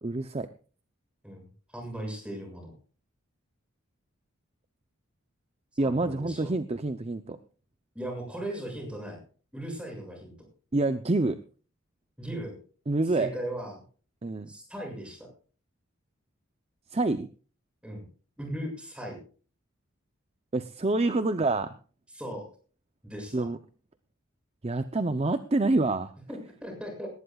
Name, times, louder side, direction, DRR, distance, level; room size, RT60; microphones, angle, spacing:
voice 1, 0.0-0.5 5.8-7.4 10.7-11.4 12.9-13.3 14.2-14.5 16.9-17.3 20.5-21.8 23.3-23.6 24.6-26.1, right 2 dB, 30° right, 10 dB, 0.6 m, -27 dB
voice 2, 1.7-2.7 5.8-6.5 7.9-9.2 9.5-10.3 12.2-12.6 13.2-13.8 14.5-15.3 17.8-18.0 18.4-19.2 22.1-22.4 23.0-23.5 26.3-27.1, right 1 dB, 5° right, 2 dB, 6.8 m, -37 dB
19.5 x 18.0 x 2.4 m, 0.39 s
head